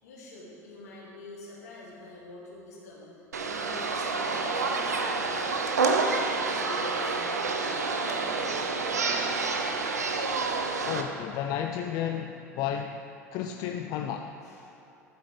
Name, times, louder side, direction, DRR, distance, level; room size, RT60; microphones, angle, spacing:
voice 1, 0.0-10.0 14.4-14.7, left 2 dB, 75° left, -5 dB, 2.3 m, -46 dB
sound 1, 3.3-11.0, right 4 dB, 85° right, 0.7 m, -28 dB
voice 2, 10.8-13.0 13.3-14.3, left 9 dB, 50° left, 5 dB, 0.4 m, -32 dB
12.5 x 7.7 x 3.3 m, 2.7 s
figure-of-eight pair, 75°, 9 cm